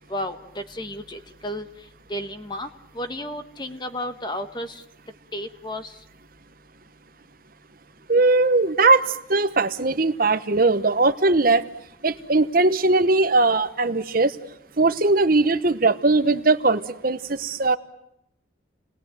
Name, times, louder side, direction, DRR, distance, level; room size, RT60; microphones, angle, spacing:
voice 1, 0.1-1.7 2.1-2.7 2.9-4.8 5.3-5.9, left 1 dB, 20° left, 8 dB, 1.4 m, -32 dB
voice 2, 8.1-9.0 9.3-11.6 12.0-14.3 14.8-17.8, right 3 dB, 45° right, 11 dB, 1.0 m, -19 dB
29.0 x 20.0 x 9.2 m, 0.80 s
head